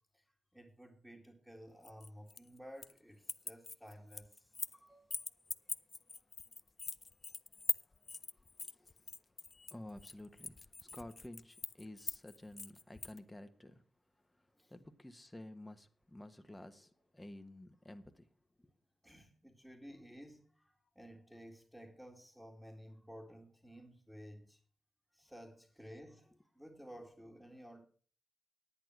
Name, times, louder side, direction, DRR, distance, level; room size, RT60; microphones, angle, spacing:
voice 1, 0.5-5.2 10.9-11.0 14.6-14.7 19.0-24.6 25.1-27.9, equal, 5° right, 2.4 m, -54 dB
sound 1, 1.8-3.0 3.2-4.8 5.1-13.2, left 3 dB, 40° left, 0.5 m, -43 dB
voice 2, 8.6-9.1 9.7-13.8 14.4-18.2 18.6-18.7, left 1 dB, 10° left, 1.4 m, -52 dB
10.5 x 8.9 x 6.2 m
cardioid pair, 55°, 0 cm